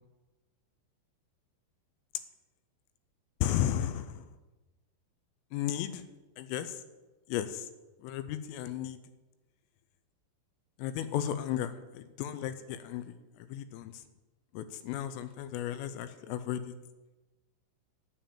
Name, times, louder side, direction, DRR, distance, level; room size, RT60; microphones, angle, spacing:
voice 1, 3.4-4.2 5.5-6.0 6.4-6.8 7.3-7.7 8.0-9.0 10.8-14.0 14.5-16.7, left 11 dB, 85° left, 12 dB, 3.2 m, -34 dB
9.0 x 7.4 x 8.9 m, 1.1 s
omnidirectional pair, 5.9 m